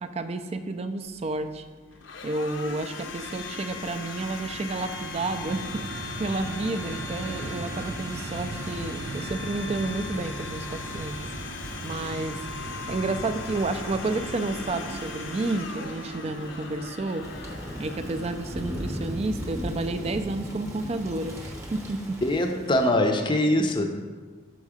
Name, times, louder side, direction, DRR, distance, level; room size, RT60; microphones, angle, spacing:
voice 1, 0.0-1.6 2.2-5.8 6.2-11.2 11.8-12.4 12.9-17.2 17.8-22.2, right 2 dB, 30° right, 9 dB, 0.3 m, -30 dB
Domestic sounds home sounds, 1.0-19.9, left 4 dB, 65° left, 0.6 m, -40 dB
Fixed-wing aircraft airplane, 2.3-20.1, right 2 dB, 85° right, 0.6 m, -39 dB
Thunder / Rain, 17.2-22.9, equal, 15° right, 0.8 m, -36 dB
voice 2, 22.2-24.0, left 1 dB, 25° left, 4 dB, 0.5 m, -23 dB
6.3 x 4.7 x 4.9 m, 1.4 s
head